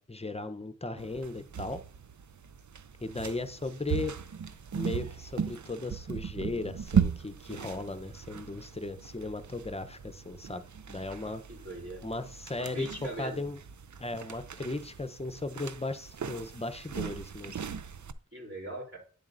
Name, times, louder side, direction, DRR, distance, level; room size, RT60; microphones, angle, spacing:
voice 1, 0.0-1.8 3.0-4.1 4.8-10.6 10.9-11.4 12.0-13.6 14.0-17.6, left 2 dB, 20° left, 10 dB, 0.7 m, -36 dB
sound 1, 1.0-18.1, right 7 dB, 65° right, 0.5 m, -37 dB
voice 2, 11.5-12.1 12.6-13.5 18.3-19.0, right 1 dB, 45° right, -2 dB, 3.2 m, -40 dB
9.7 x 7.3 x 2.6 m, 0.42 s
wide cardioid pair, 45°, 31 cm